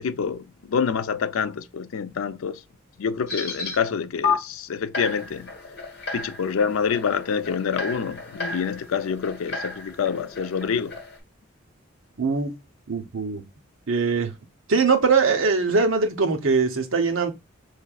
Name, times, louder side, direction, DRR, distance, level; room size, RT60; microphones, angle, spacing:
voice 1, 0.0-2.6 3.0-5.5 6.1-11.0, left 6 dB, 75° left, 0.4 m, -27 dB
sound 1, 3.3-3.8 4.2-4.3 4.9-11.2, left 4 dB, 50° left, 1.2 m, -32 dB
voice 2, 12.2-12.5 12.9-13.4 13.9-14.3 14.7-17.3, right 4 dB, 70° right, 0.8 m, -21 dB
5.8 x 3.2 x 2.3 m
head